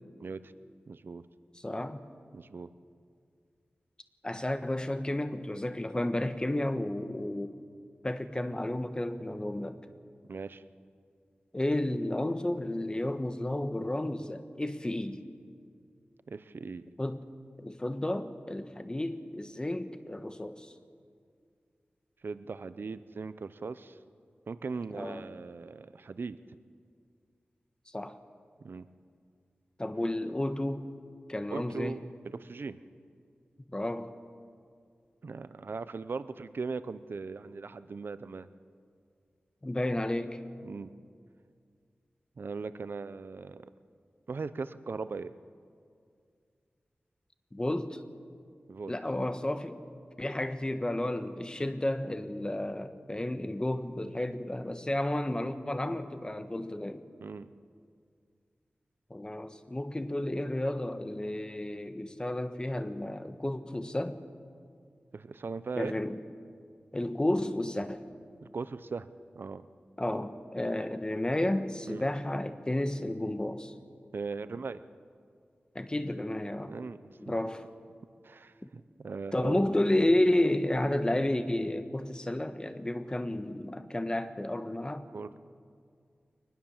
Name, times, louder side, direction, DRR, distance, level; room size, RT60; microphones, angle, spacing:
voice 1, 0.2-0.5 0.9-1.2 2.3-2.7 10.3-10.6 16.3-16.9 22.2-24.0 24.5-26.4 28.6-28.9 31.5-32.8 35.2-38.5 40.6-40.9 42.4-43.7 44.3-45.3 48.7-48.9 57.2-57.5 65.1-66.0 68.4-69.1 69.3-69.7 71.9-72.0 74.1-74.8 76.7-77.0 78.2-79.7 85.1-85.4, right 4 dB, 70° right, 14 dB, 0.7 m, -39 dB
voice 2, 1.5-2.0 4.2-7.5 8.0-9.8 11.5-15.2 17.0-17.2 17.6-20.7 24.9-25.3 27.9-28.2 29.8-30.9 31.3-32.0 33.7-34.1 39.6-40.4 47.5-48.0 48.9-49.8 50.2-57.0 59.1-64.2 65.7-66.2 66.9-68.0 70.0-73.7 75.7-76.8 77.2-77.7 78.6-78.7 79.3-85.1, left 1 dB, 25° left, 9 dB, 1.4 m, -32 dB
23.5 x 20.0 x 7.3 m, 2.2 s
wide cardioid pair, 65°, 4 cm